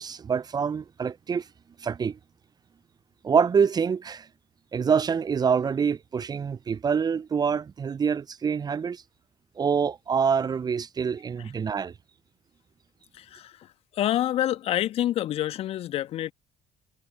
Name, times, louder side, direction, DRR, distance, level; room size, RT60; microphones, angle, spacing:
voice 1, 0.0-1.5 1.8-2.2 3.2-4.3 4.7-9.0 9.6-11.9, right 6 dB, 30° right, 0.9 m, -26 dB
voice 2, 13.1-13.7 13.9-16.3, left 13 dB, 55° left, 1.6 m, -27 dB
figure-of-eight pair, 50°, 12 cm